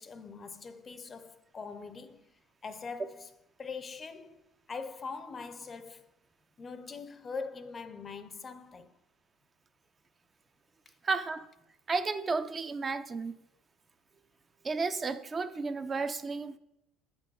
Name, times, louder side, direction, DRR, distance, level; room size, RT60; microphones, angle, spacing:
voice 1, 0.0-2.3 2.6-3.3 3.6-6.1 6.6-9.0 10.9-11.0, left 4 dB, 30° left, 0.6 m, -42 dB
voice 2, 11.0-11.5 11.9-13.3 14.6-16.6, right 4 dB, 25° right, 0.5 m, -32 dB
8.9 x 5.3 x 5.5 m
supercardioid pair, 105°, 0 cm